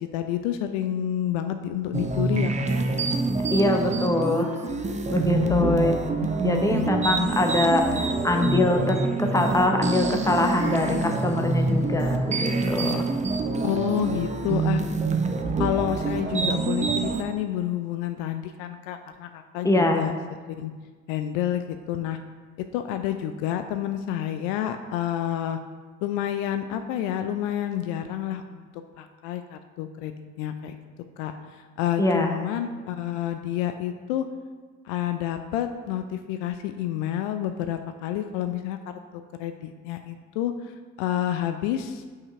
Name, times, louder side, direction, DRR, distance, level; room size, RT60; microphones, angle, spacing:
voice 1, 0.0-2.8 5.3-5.8 6.4-6.9 12.8-13.0 13.6-14.8 15.6-20.1 20.5-20.7 21.1-22.2 22.7-25.6 26.0-28.7 29.0-30.8 31.2-34.3 34.8-38.8 39.1-42.0, left 11 dB, 65° left, 8 dB, 0.5 m, -29 dB
sound 1, 1.9-17.2, right 3 dB, 20° right, 0.6 m, -26 dB
voice 2, 3.5-4.5 5.1-6.0 6.4-13.1 19.6-20.0 32.0-32.4, left 2 dB, 10° left, 3 dB, 0.9 m, -23 dB
5.7 x 4.8 x 4.6 m, 1.5 s
hypercardioid pair, 55°, 39 cm